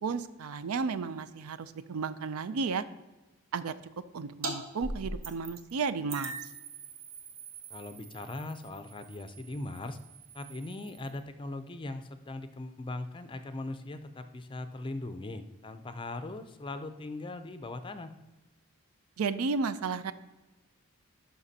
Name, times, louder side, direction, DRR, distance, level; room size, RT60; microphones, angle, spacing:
voice 1, 0.0-2.8 3.5-3.7 4.1-6.3 19.2-20.1, right 4 dB, 85° right, 14 dB, 0.4 m, -33 dB
sound 1, 4.4-4.6 4.8-5.7 6.1-11.2, right 3 dB, 70° right, 1.1 m, -42 dB
voice 2, 7.7-10.0 10.3-18.1, left 2 dB, 25° left, 10 dB, 0.4 m, -40 dB
11.0 x 5.8 x 2.8 m, 1.1 s
head